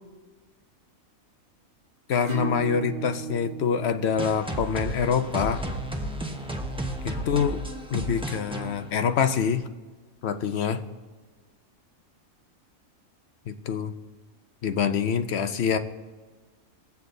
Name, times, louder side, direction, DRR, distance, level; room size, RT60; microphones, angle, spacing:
voice 1, 2.1-5.6 7.0-7.6 7.9-9.6 10.2-10.8 13.5-13.9 14.6-15.8, left 7 dB, 55° left, 8 dB, 0.9 m, -25 dB
Acoustic guitar / Strum, 2.2-7.5, right 4 dB, 30° right, 2.0 m, -38 dB
sound 1, 4.2-9.6, right 1 dB, 5° right, 0.8 m, -33 dB
21.5 x 8.1 x 3.9 m, 1.3 s
omnidirectional pair, 1.5 m